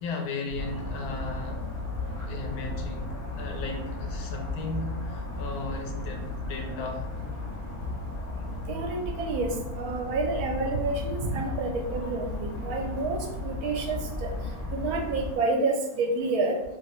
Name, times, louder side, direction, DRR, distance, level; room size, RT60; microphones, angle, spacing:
voice 1, 0.0-1.6 2.3-7.1, left 3 dB, 75° left, 1.0 m, -36 dB
sound 1, 0.5-15.4, left 2 dB, 40° left, 1.0 m, -35 dB
voice 2, 8.7-14.3 14.7-16.6, right 3 dB, 75° right, 1.1 m, -29 dB
2.8 x 2.8 x 3.0 m
omnidirectional pair, 1.6 m